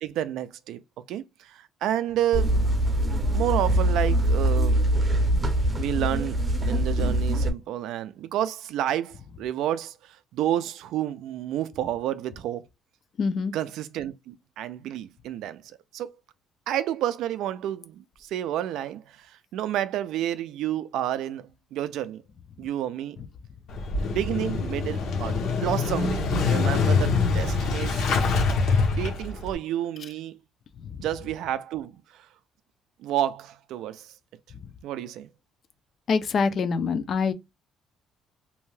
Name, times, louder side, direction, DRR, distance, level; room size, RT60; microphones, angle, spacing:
voice 1, 0.0-0.8 1.1-2.5 3.3-4.8 5.8-12.7 13.5-15.6 15.9-16.1 16.7-22.2 22.6-23.2 24.1-28.2 29.0-30.4 31.0-32.3 33.0-34.1 34.8-35.3, right 11 dB, 75° right, 0.3 m, -30 dB
sound 1, 2.3-7.5, right 1 dB, 20° right, 0.6 m, -23 dB
voice 2, 13.2-13.5 36.1-37.3, left 5 dB, 40° left, 0.4 m, -24 dB
Motorcycle / Engine starting, 23.7-29.5, left 4 dB, 70° left, 0.9 m, -24 dB
2.6 x 2.2 x 3.1 m
cardioid pair, 150°, 0 cm